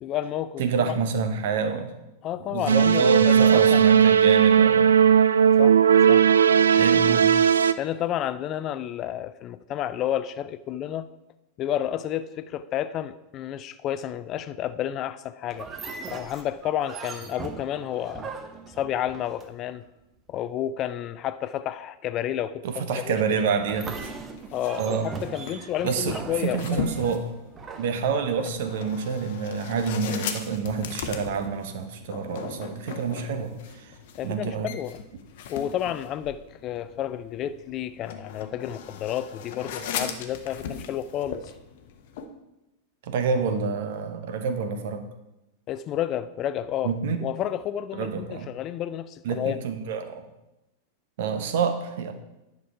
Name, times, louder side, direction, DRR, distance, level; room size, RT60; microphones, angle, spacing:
voice 1, 0.0-0.9 2.2-3.9 5.6-5.8 6.1-6.2 7.8-11.1 11.6-15.7 16.1-18.3 18.8-19.8 20.3-22.6 22.9-23.1 24.5-26.9 34.2-35.0 35.5-41.4 45.7-46.9 47.2-49.6, left 11 dB, 35° left, 13 dB, 0.4 m, -30 dB
voice 2, 0.6-1.9 2.4-5.0 6.7-7.3 22.6-24.1 24.8-25.1 25.8-27.3 27.8-34.0 34.2-34.7 43.0-45.0 46.8-47.2 47.9-48.5 49.2-50.3 51.2-52.1, right 5 dB, 55° right, 8 dB, 0.9 m, -28 dB
sound 1, 2.7-7.7, right 8 dB, 70° right, 0.3 m, -17 dB
sound 2, 15.5-19.8 23.6-28.7, right 5 dB, 25° right, 0.9 m, -40 dB
sound 3, 24.0-42.3, left 6 dB, 50° left, 0.8 m, -39 dB
9.9 x 5.3 x 4.7 m, 0.95 s
figure-of-eight pair, 90°, 0 cm